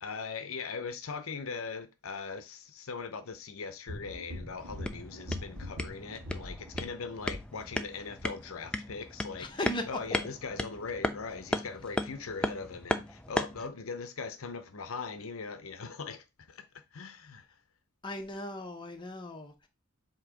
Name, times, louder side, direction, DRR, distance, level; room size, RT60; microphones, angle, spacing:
voice 1, 0.0-16.6 16.9-17.4, left 5 dB, 75° left, 0.7 m, -40 dB
sound 1, 3.9-7.9 8.2-8.3, left 1 dB, 55° right, 1.4 m, -42 dB
sound 2, 4.6-13.7, left 1 dB, 5° left, 0.4 m, -36 dB
voice 2, 9.4-9.9 18.0-19.7, left 1 dB, 20° left, 1.0 m, -37 dB
7.6 x 2.9 x 4.9 m
head